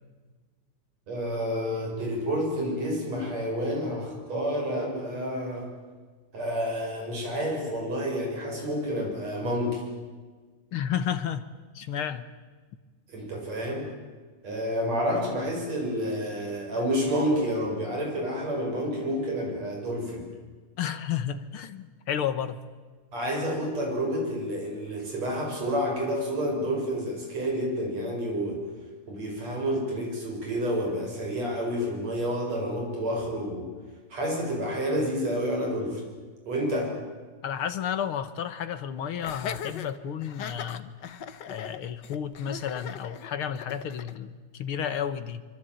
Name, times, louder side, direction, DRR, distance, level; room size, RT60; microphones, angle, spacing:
voice 1, 1.1-5.7 6.3-9.8 13.1-13.9 14.4-20.3 23.1-28.6 29.1-33.7 34.1-36.0 36.5-37.0, equal, 55° right, 8.1 m, -29 dB
voice 2, 10.7-11.5 11.7-12.2 20.8-22.6 37.4-41.0 41.5-45.4, left 8 dB, 60° left, 1.5 m, -32 dB
Laughter, 39.2-44.2, left 8 dB, 75° left, 1.0 m, -39 dB
25.0 x 24.0 x 9.2 m
omnidirectional pair, 3.5 m